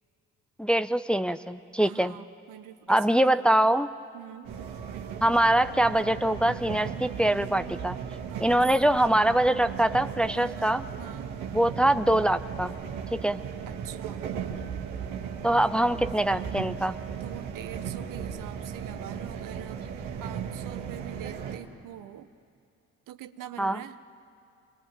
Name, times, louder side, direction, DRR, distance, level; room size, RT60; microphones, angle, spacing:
voice 1, 0.6-2.1 2.9-3.9 5.2-8.0 8.4-10.8 11.5-12.7 13.1-13.4 15.4-17.0 23.6-23.8, right 1 dB, 5° left, 10 dB, 0.7 m, -23 dB
voice 2, 1.8-3.7 4.1-4.5 8.3-8.6 10.3-10.7 11.0-11.3 13.7-14.2 17.2-19.8 20.2-22.3 23.1-24.0, right 11 dB, 65° right, 10 dB, 1.1 m, -44 dB
sound 1, 4.4-21.6, right 7 dB, 80° right, 1.7 m, -36 dB
26.0 x 20.5 x 9.1 m, 2.4 s
hypercardioid pair, 50°, 34 cm